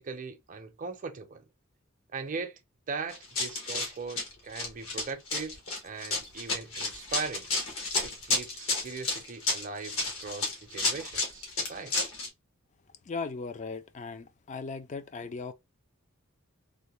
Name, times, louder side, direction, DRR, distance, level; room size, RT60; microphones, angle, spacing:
voice 1, 0.0-1.4 2.1-2.6 2.9-5.6 5.8-7.5 8.0-11.9, right 4 dB, 40° right, 0.6 m, -39 dB
Run, 3.1-12.3, left 3 dB, 75° left, 1.3 m, -31 dB
voice 2, 13.1-15.5, left 4 dB, 35° left, 0.4 m, -37 dB
3.6 x 2.1 x 2.9 m
head